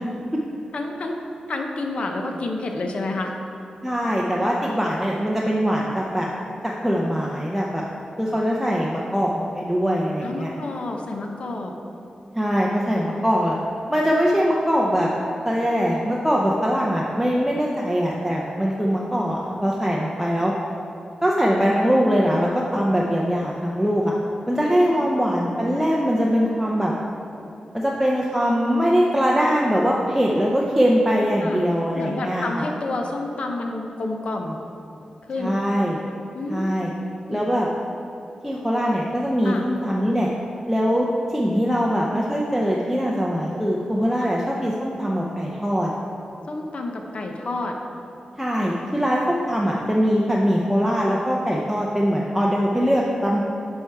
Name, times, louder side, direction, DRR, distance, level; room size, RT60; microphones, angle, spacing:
voice 1, 0.7-1.2 1.5-3.4 8.4-8.6 10.2-11.7 24.5-25.1 31.4-31.6 31.9-34.6 35.3-35.6 36.3-36.8 37.3-37.4 39.4-39.6 44.2-44.3 46.5-47.8, left 2 dB, 55° left, 3 dB, 0.7 m, -29 dB
voice 2, 3.8-6.3 6.6-7.8 8.2-10.5 12.3-13.6 13.9-15.1 15.4-20.5 21.2-24.1 24.5-26.9 27.7-32.7 35.4-36.0 36.5-36.9 37.3-37.7 38.4-40.3 40.7-45.9 48.4-53.4, equal, 5° right, -3 dB, 0.6 m, -22 dB
7.8 x 5.5 x 4.7 m, 2.8 s
wide cardioid pair, 135°, 2 cm